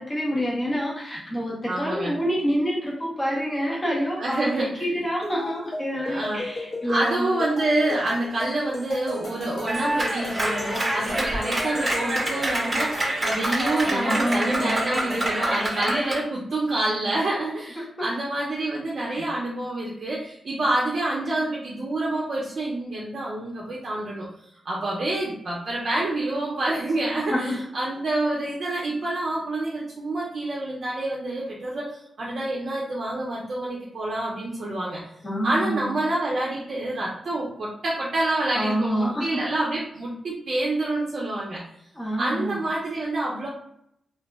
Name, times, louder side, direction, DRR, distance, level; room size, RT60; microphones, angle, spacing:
voice 1, 0.0-7.3 13.8-14.7 17.8-17.9 19.1-19.3 27.3-27.7 35.2-36.0 38.5-39.6 41.9-42.6, equal, 15° left, -5 dB, 0.7 m, -27 dB
voice 2, 1.7-2.2 4.2-4.9 6.0-6.4 6.9-24.3 24.6-31.9 32.2-35.0 35.4-41.6 42.2-43.5, right 2 dB, 45° right, -4 dB, 0.5 m, -27 dB
sound 1, 5.2-15.8, left 2 dB, 55° left, 0.8 m, -38 dB
Clapping, 9.7-16.2, right 1 dB, 15° right, 0.7 m, -26 dB
2.2 x 2.0 x 3.4 m, 0.73 s
wide cardioid pair, 175°, 0 cm